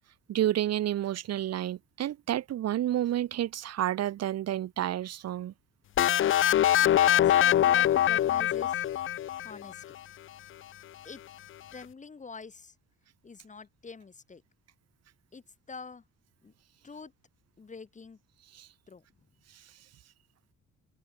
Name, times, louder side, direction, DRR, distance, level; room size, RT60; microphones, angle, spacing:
voice 1, 0.3-5.5 18.5-18.7, right 12 dB, 55° right, 0.7 m, -30 dB
sound 1, 6.0-9.7, left 11 dB, 45° left, 0.4 m, -23 dB
voice 2, 6.8-8.8 9.4-9.8 11.0-11.2 11.7-12.7 13.2-14.4 15.3-15.4 15.7-16.0 16.4-16.5 16.8-17.1 17.6-18.2 18.9-19.0, left 4 dB, 25° left, 1.0 m, -45 dB
open air
cardioid pair, 90°, 30 cm